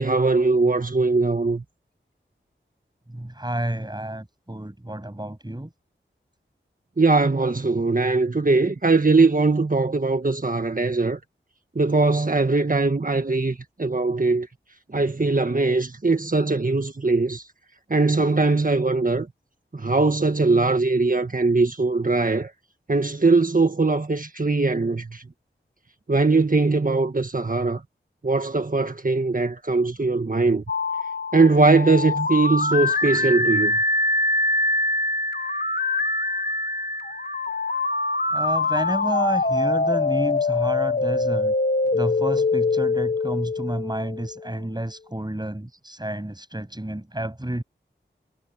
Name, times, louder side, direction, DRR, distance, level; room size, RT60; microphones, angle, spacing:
voice 1, 0.0-1.6 7.0-11.2 11.7-14.5 14.9-17.4 17.9-19.3 19.7-22.5 22.9-25.2 26.1-27.8 28.2-30.6 31.3-33.8, right 3 dB, 40° right, 1.6 m, -21 dB
voice 2, 3.1-5.7 38.3-41.5 41.9-47.6, right 1 dB, 20° right, 7.9 m, -30 dB
sound 1, 30.7-44.5, left 3 dB, 50° left, 1.2 m, -24 dB
wide cardioid pair, 45°, 21 cm